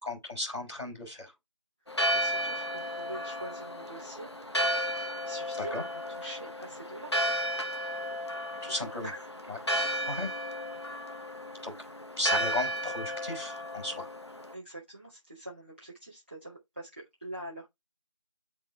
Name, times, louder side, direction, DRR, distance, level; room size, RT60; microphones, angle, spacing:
voice 1, 0.0-1.3 5.6-5.8 8.6-9.1 9.5-9.6 10.1-10.3 11.6-11.7 12.2-14.1, left 2 dB, 5° right, 3.1 m, -35 dB
voice 2, 1.8-4.3 5.2-7.1 8.8-9.3 9.7-10.1 14.5-17.7, right 1 dB, 20° right, 2.3 m, -44 dB
Church bell, 1.9-14.5, equal, 55° left, 1.0 m, -33 dB
10.5 x 3.8 x 3.4 m
figure-of-eight pair, 175°, 17 cm